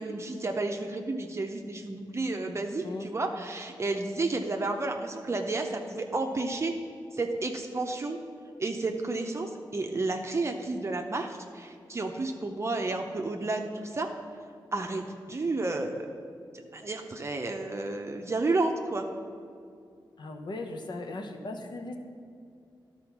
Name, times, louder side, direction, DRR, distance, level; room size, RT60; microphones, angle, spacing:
voice 1, 0.0-6.7 7.1-8.2 8.6-14.1 14.7-16.1 16.7-19.1, right 2 dB, 35° right, 3 dB, 0.6 m, -31 dB
voice 2, 20.2-22.0, left 2 dB, 65° left, 4 dB, 0.9 m, -37 dB
11.5 x 4.3 x 6.0 m, 2.4 s
cardioid pair, 75°, 8 cm